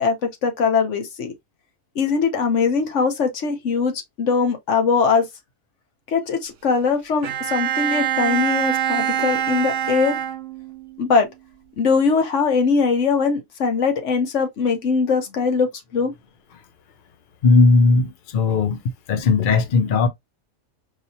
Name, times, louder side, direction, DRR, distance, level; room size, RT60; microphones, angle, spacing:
voice 1, 0.0-1.3 2.0-5.3 6.1-10.2 11.0-11.3 11.8-16.1, left 5 dB, 65° left, 1.2 m, -21 dB
Bowed string instrument, 7.2-10.9, right 10 dB, 70° right, 1.0 m, -24 dB
voice 2, 17.4-18.8 19.1-20.1, left 3 dB, 50° left, 0.7 m, -17 dB
4.7 x 2.9 x 2.7 m
omnidirectional pair, 1.4 m